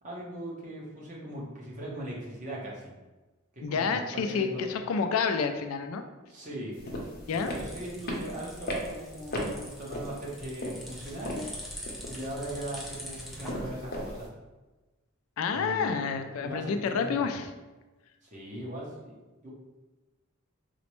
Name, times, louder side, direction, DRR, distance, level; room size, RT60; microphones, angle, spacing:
voice 1, 0.0-2.9 3.5-4.7 6.3-6.8 7.4-11.5 12.1-14.3 15.5-16.2 16.4-17.4 18.2-19.1 19.4-19.5, right 1 dB, 40° right, -4 dB, 0.9 m, -39 dB
voice 2, 3.6-6.0 7.3-7.5 15.4-17.4, left 5 dB, 85° left, 7 dB, 0.3 m, -29 dB
sound 1, 6.7-14.3, left 1 dB, 50° left, 0.7 m, -38 dB
sound 2, 6.8-13.5, equal, ahead, 0.5 m, -44 dB
4.1 x 2.1 x 3.0 m, 1.2 s
head